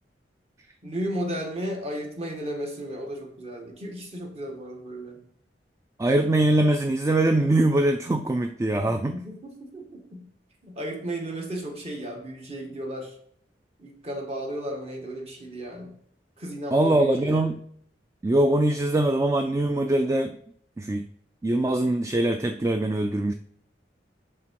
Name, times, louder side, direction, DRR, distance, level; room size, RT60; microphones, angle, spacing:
voice 1, 0.8-5.2 8.9-10.3 10.6-13.1 13.8-16.0 16.4-17.4, right 1 dB, 35° right, 1 dB, 1.6 m, -34 dB
voice 2, 6.0-9.2 16.7-17.6 18.2-20.4 20.8-21.1 21.4-23.3, right 1 dB, 15° right, 7 dB, 0.3 m, -22 dB
10.0 x 3.6 x 4.6 m, 0.65 s
head